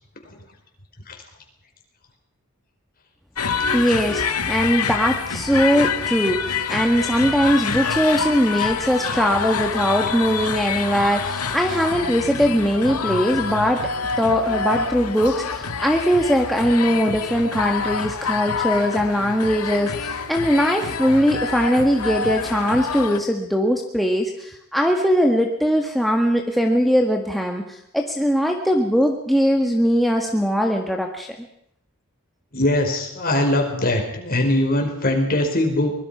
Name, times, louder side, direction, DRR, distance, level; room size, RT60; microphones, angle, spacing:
sound 1, 3.4-23.2, left 5 dB, 90° left, 1.9 m, -27 dB
voice 1, 3.7-4.2 4.5-13.8 14.2-31.3, equal, ahead, 1 dB, 1.7 m, -20 dB
voice 2, 32.5-35.9, left 1 dB, 40° left, 3 dB, 5.0 m, -21 dB
24.0 x 21.0 x 5.8 m, 0.74 s
head